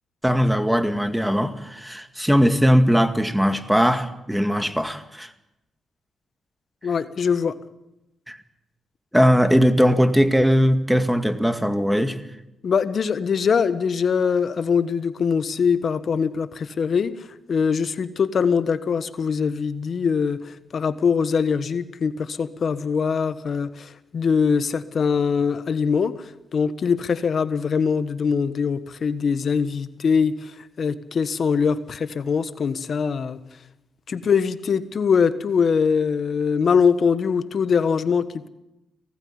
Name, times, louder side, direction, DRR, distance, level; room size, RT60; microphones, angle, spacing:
voice 1, 0.2-5.3 8.3-8.4 9.1-12.2, equal, 5° right, 9 dB, 2.0 m, -19 dB
voice 2, 6.8-7.5 12.6-17.1 17.5-26.1 26.5-30.3 30.8-33.4 34.1-38.5, left 6 dB, 60° left, 13 dB, 1.3 m, -22 dB
18.0 x 15.5 x 9.9 m, 0.92 s
supercardioid pair, 55°, 0 cm